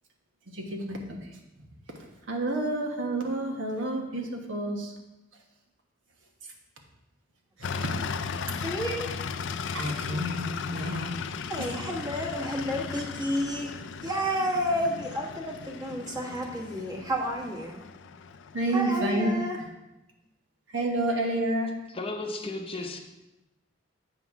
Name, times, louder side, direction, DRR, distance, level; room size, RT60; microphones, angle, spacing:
voice 1, 0.5-1.0 2.3-4.9 9.7-11.1 18.5-19.4 20.7-21.7, right 1 dB, 85° right, 1 dB, 1.3 m, -29 dB
sound 1, 7.6-19.4, left 5 dB, 65° left, 0.4 m, -36 dB
voice 2, 8.6-9.2 11.5-13.7 14.0-17.8 18.7-19.6, equal, 20° right, 0 dB, 1.2 m, -31 dB
voice 3, 21.9-23.0, left 2 dB, 30° left, 4 dB, 0.6 m, -34 dB
7.9 x 4.0 x 5.8 m, 0.98 s
head